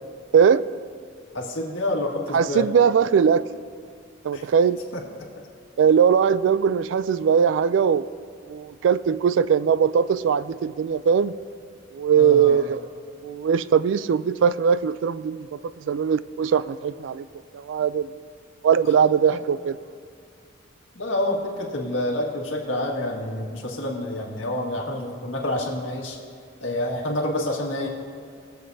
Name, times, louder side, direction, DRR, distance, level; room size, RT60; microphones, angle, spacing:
voice 1, 0.3-0.6 2.3-3.4 4.2-4.8 5.8-8.1 8.5-11.4 11.9-12.8 13.2-15.6 15.9-17.3 17.5-18.1 18.6-19.8, right 7 dB, 70° right, 16 dB, 0.3 m, -20 dB
voice 2, 1.3-2.7 4.3-4.4 4.9-5.3 12.1-12.6 18.8-18.9 19.3-19.4 20.9-26.2 26.6-27.9, left 1 dB, 85° left, -1 dB, 1.8 m, -28 dB
21.0 x 7.7 x 2.7 m, 2.2 s
head